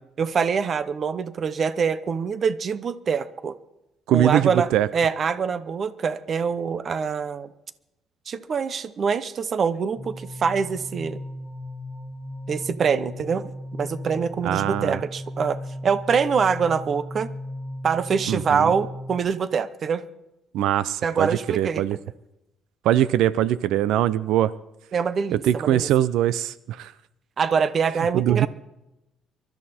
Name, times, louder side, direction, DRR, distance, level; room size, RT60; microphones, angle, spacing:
voice 1, 0.2-3.5 4.1-7.5 8.3-11.2 12.5-13.5 13.8-17.3 17.8-20.0 21.0-21.8 24.9-25.9 27.4-28.5, right 6 dB, 35° right, 15 dB, 0.8 m, -24 dB
voice 2, 4.1-4.9 14.4-15.0 18.3-18.7 20.5-21.3 21.5-22.0 22.8-24.5 25.3-26.9 28.1-28.5, right 12 dB, 85° right, 17 dB, 0.5 m, -22 dB
sound 1, 9.9-19.2, left 1 dB, 10° left, 4.8 m, -36 dB
23.5 x 13.0 x 4.3 m, 0.91 s
cardioid pair, 165°, 0 cm